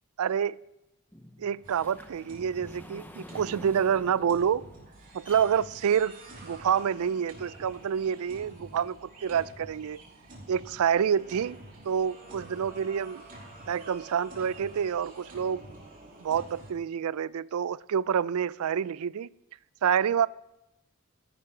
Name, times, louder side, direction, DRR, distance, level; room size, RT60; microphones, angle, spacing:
voice 1, 0.2-0.6 1.4-4.6 5.1-10.0 10.5-11.6 11.9-13.2 13.7-15.6 16.2-19.3 19.8-20.3, right 8 dB, 80° right, 0.4 m, -28 dB
sound 1, 1.1-7.2 7.8-7.9 8.5-8.6 8.9-9.0, left 1 dB, 10° left, 0.7 m, -49 dB
sound 2, 1.6-16.7, right 1 dB, 40° right, 2.9 m, -48 dB
14.0 x 10.0 x 4.9 m
head